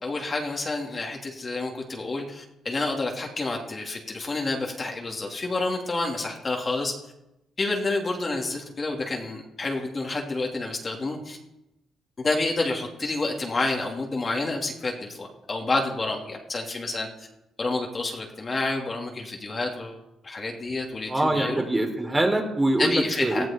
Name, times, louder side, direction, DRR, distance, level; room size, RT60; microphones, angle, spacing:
voice 1, 0.0-6.9 7.6-11.4 12.2-17.1 17.6-20.0 20.2-21.6 22.8-23.5, left 2 dB, 30° left, 0 dB, 2.9 m, -29 dB
voice 2, 21.1-23.5, right 1 dB, 15° right, 2 dB, 3.5 m, -24 dB
19.5 x 14.0 x 4.5 m, 0.90 s
cardioid pair, 90°, 0 cm